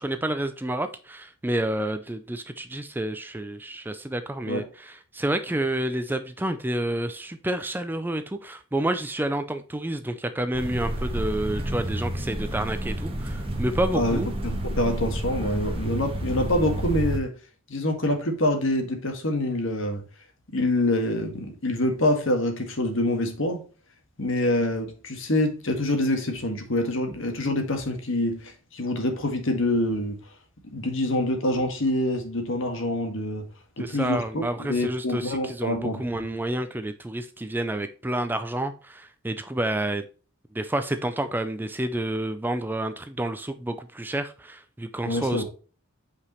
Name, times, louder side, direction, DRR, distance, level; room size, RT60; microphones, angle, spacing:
voice 1, 0.0-14.3 33.8-40.0 40.5-45.4, right 1 dB, 10° right, 0.4 m, -29 dB
sound 1, 10.5-17.2, right 1 dB, 25° right, 1.3 m, -30 dB
voice 2, 13.9-17.3 17.7-20.0 20.5-23.6 24.2-30.2 30.7-33.5 33.8-36.0 45.1-45.4, left 1 dB, 65° left, 1.8 m, -26 dB
8.4 x 5.0 x 3.0 m
head